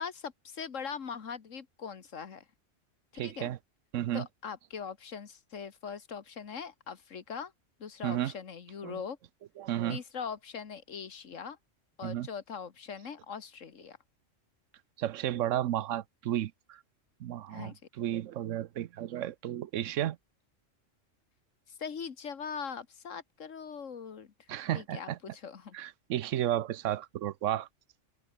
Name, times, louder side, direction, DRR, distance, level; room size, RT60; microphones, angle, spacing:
voice 1, 0.0-2.5 3.2-3.5 4.1-7.5 7.8-9.2 9.9-11.6 12.0-14.0 17.5-17.8 21.7-24.3 24.7-25.8, left 6 dB, 90° left, 1.8 m, -41 dB
voice 2, 3.1-3.6 3.9-4.3 8.0-8.3 8.8-9.0 9.6-10.0 12.0-12.3 15.0-16.8 17.2-20.2 24.5-25.2 25.7-27.7, right 12 dB, 85° right, 1.0 m, -33 dB
omnidirectional pair, 1.3 m